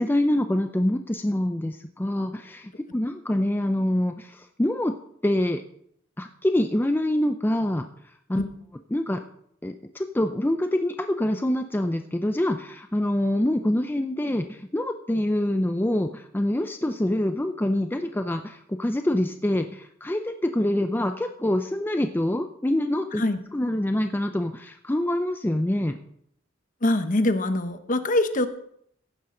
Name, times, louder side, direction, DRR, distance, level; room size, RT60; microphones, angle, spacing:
voice 1, 0.0-4.9 5.2-5.6 6.2-7.9 8.3-8.4 8.9-9.2 9.6-23.2 23.5-26.0, left 1 dB, 10° left, 6 dB, 0.5 m, -25 dB
voice 2, 26.8-28.5, left 1 dB, 40° left, 9 dB, 1.0 m, -23 dB
15.5 x 11.0 x 3.8 m, 0.69 s
head